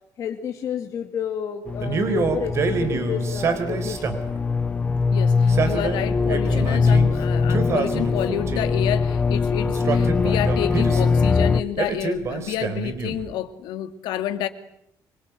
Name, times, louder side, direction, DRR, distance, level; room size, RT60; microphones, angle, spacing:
voice 1, 0.2-4.0, left 8 dB, 45° left, 2.6 m, -30 dB
sound 1, 1.7-11.6, left 4 dB, 15° left, 1.0 m, -22 dB
Male speech man speaking, 1.8-4.4 5.3-7.1 7.5-8.8 9.6-11.2 11.8-13.3, right 5 dB, 40° right, 4.0 m, -27 dB
voice 2, 5.1-14.5, left 11 dB, 90° left, 2.5 m, -29 dB
26.0 x 24.5 x 9.4 m
cardioid pair, 160°, 7 cm